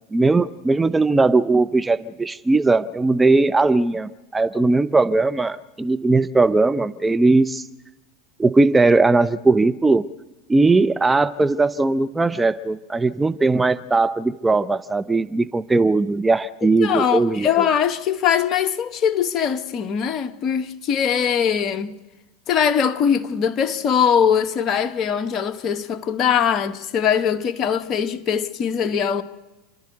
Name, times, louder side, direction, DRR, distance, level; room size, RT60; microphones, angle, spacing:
voice 1, 0.0-7.6 8.4-10.1 10.5-17.5, right 3 dB, 15° right, 0.6 m, -19 dB
voice 2, 16.6-21.9 22.5-29.2, left 8 dB, 40° left, 1.2 m, -21 dB
29.5 x 12.0 x 8.0 m
hypercardioid pair, 85°, 0 cm